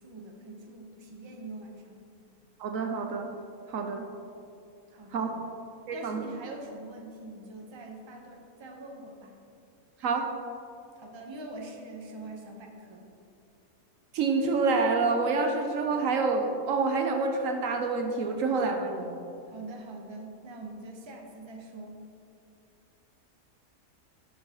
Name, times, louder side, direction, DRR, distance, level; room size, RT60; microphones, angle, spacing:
voice 1, 0.0-2.0 4.9-5.4 5.9-9.4 11.0-13.1 19.4-22.1, right 2 dB, 25° right, 1 dB, 0.7 m, -44 dB
voice 2, 2.6-3.3 3.7-4.1 5.1-5.4 5.9-6.2 10.0-10.3 14.1-19.2, right 4 dB, 70° right, 4 dB, 1.0 m, -27 dB
11.5 x 6.5 x 2.9 m, 2.7 s
omnidirectional pair, 1.5 m